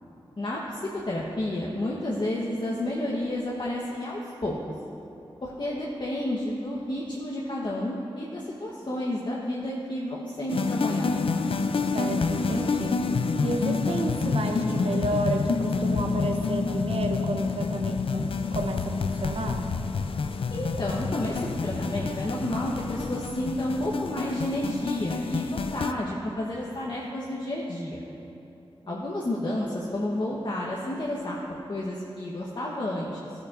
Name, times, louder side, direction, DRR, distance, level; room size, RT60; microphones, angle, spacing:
voice 1, 0.4-4.5 5.4-11.3 20.5-28.0 28.9-31.4 31.7-33.2, left 1 dB, 50° left, -4 dB, 1.1 m, -31 dB
sound 1, 10.5-25.9, left 4 dB, 65° left, 0.4 m, -28 dB
voice 2, 11.9-13.0 13.4-19.7 28.8-28.9, right 2 dB, 75° right, 4 dB, 0.8 m, -31 dB
13.0 x 8.8 x 2.5 m, 2.9 s
cardioid pair, 45°, 10 cm